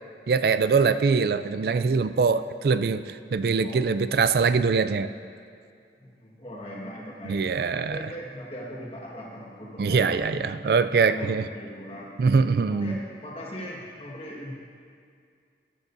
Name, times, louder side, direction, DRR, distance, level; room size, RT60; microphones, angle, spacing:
voice 1, 0.3-5.1 7.2-8.1 9.8-11.5 12.2-12.9, right 5 dB, 60° right, 12 dB, 0.3 m, -23 dB
voice 2, 3.4-3.8 6.0-10.6 11.1-14.5, equal, 35° left, -3 dB, 1.6 m, -40 dB
15.0 x 11.5 x 2.7 m, 2.3 s
head